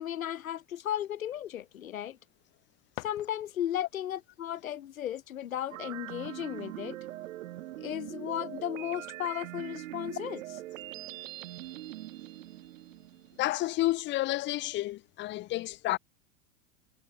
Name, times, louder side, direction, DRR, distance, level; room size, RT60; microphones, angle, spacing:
voice 1, 0.0-2.2 3.0-7.0 7.8-10.4, left 11 dB, 85° left, 1.3 m, -35 dB
sound 1, 2.8-3.9, left 26 dB, 60° left, 5.5 m, -47 dB
sound 2, 5.7-13.6, right 15 dB, 75° right, 1.3 m, -42 dB
voice 2, 13.4-16.0, left 17 dB, 30° left, 0.4 m, -30 dB
hypercardioid pair, 90°, 40 cm